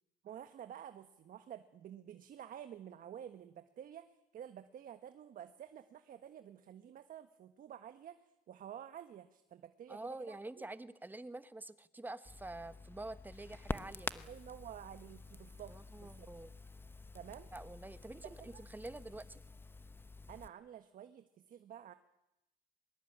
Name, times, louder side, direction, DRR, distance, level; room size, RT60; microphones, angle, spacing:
voice 1, 0.2-8.2 8.5-10.7 14.3-16.3 17.1-17.5 18.4-18.6 20.3-21.9, right 10 dB, 55° right, 9 dB, 1.5 m, -51 dB
voice 2, 9.9-14.3 15.7-16.5 17.5-19.4, right 2 dB, 10° right, 13 dB, 1.2 m, -47 dB
Crackle, 12.2-20.5, left 3 dB, 15° left, 1.0 m, -48 dB
23.5 x 21.5 x 8.9 m, 0.89 s
cardioid pair, 110°, 17 cm